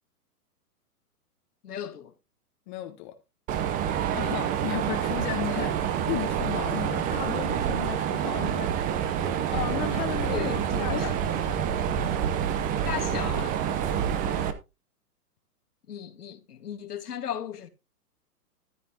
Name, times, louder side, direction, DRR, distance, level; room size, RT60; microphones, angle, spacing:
voice 1, 1.6-2.1 10.3-11.5 12.8-13.5 15.9-17.7, left 9 dB, 80° left, 1.8 m, -35 dB
voice 2, 2.7-3.2 4.1-9.0 9.5-10.5 10.8-11.4, left 14 dB, 30° left, 0.9 m, -35 dB
Mechanisms, 3.5-14.5, right 9 dB, 20° right, 0.7 m, -27 dB
13.5 x 8.3 x 2.8 m
hypercardioid pair, 135°, 46 cm